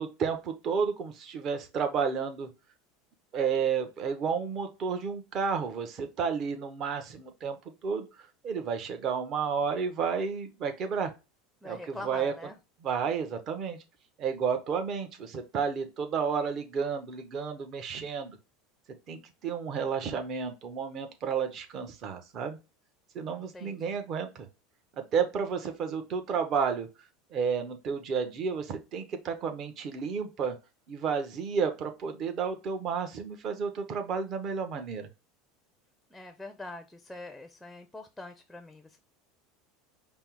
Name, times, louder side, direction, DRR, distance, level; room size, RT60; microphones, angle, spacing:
voice 1, 0.0-2.5 3.3-7.6 7.8-11.1 11.6-12.3 12.8-13.8 14.2-18.4 19.1-22.6 23.1-24.5 25.0-26.9 27.3-30.6 30.9-35.1, right 6 dB, 40° right, 7 dB, 0.8 m, -31 dB
voice 2, 11.6-12.6 23.2-24.0 36.1-39.0, left 2 dB, 5° left, 8 dB, 0.5 m, -44 dB
5.3 x 2.0 x 4.6 m, 0.28 s
supercardioid pair, 125°, 0 cm